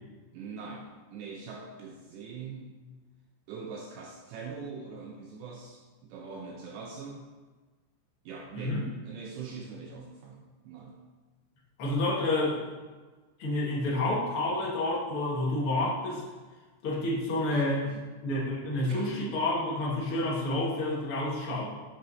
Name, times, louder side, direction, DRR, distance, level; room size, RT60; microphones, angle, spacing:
voice 1, 0.3-2.9 3.5-7.3 8.3-11.0 17.5-18.1 18.9-19.3, right 5 dB, 80° right, -1 dB, 2.6 m, -42 dB
voice 2, 11.8-12.7 13.4-16.2 16.8-17.8 18.2-21.6, left 2 dB, 50° left, -5 dB, 1.5 m, -29 dB
9.3 x 7.7 x 4.1 m, 1.3 s
omnidirectional pair, 5.8 m